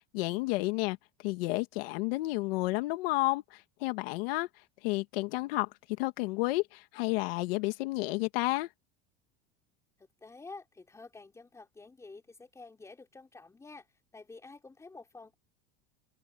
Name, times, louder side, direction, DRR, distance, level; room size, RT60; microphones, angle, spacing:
voice 1, 0.1-1.0 1.2-4.5 4.8-5.7 6.0-8.7, left 21 dB, 75° left, 1.5 m, -31 dB
voice 2, 10.0-13.9 14.1-15.3, left 3 dB, 10° left, 4.6 m, -50 dB
open air
cardioid pair, 160°, 30 cm